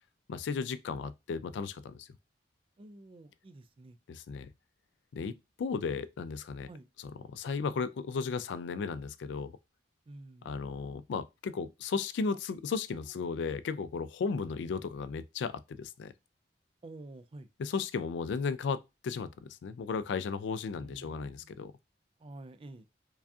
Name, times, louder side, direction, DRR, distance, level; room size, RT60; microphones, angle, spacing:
voice 1, 0.3-2.1 4.1-4.5 5.1-6.7 7.3-9.6 10.4-16.1 17.6-21.7, left 5 dB, 75° left, 0.3 m, -35 dB
voice 2, 2.8-4.0 6.7-6.9 10.1-10.5 16.8-17.5 20.7-21.5 22.2-22.9, right 2 dB, 30° right, 0.3 m, -49 dB
4.7 x 2.3 x 2.6 m
head